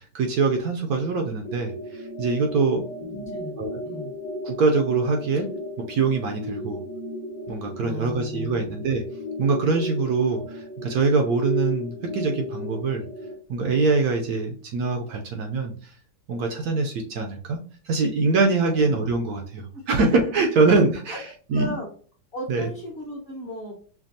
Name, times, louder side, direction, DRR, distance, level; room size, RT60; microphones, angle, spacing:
voice 1, 0.0-2.9 3.6-3.8 4.4-5.5 5.9-6.8 7.5-9.0 9.4-13.0 13.5-15.9 16.3-17.6 17.8-21.8 22.5-22.7, right 4 dB, 70° right, 3 dB, 1.0 m, -23 dB
sound 1, 1.4-13.3, left 1 dB, 60° left, 1.0 m, -35 dB
voice 2, 3.0-3.6 3.8-4.1 7.8-8.7 18.7-19.0 19.7-20.2 21.1-21.2 21.5-21.9 22.3-23.8, left 1 dB, 35° left, -3 dB, 1.1 m, -36 dB
5.8 x 2.2 x 2.6 m, 0.43 s
omnidirectional pair, 1.9 m